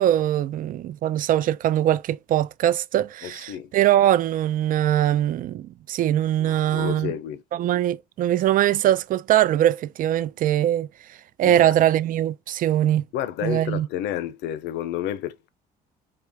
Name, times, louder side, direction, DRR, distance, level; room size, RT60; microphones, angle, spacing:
voice 1, 0.0-7.1 7.5-10.9 11.4-13.0 13.4-13.9, right 12 dB, 55° right, 0.4 m, -22 dB
voice 2, 3.2-3.7 6.4-7.4 11.4-11.7 13.1-15.5, left 11 dB, 85° left, 0.7 m, -31 dB
4.3 x 3.3 x 3.5 m
cardioid pair, 110°, 17 cm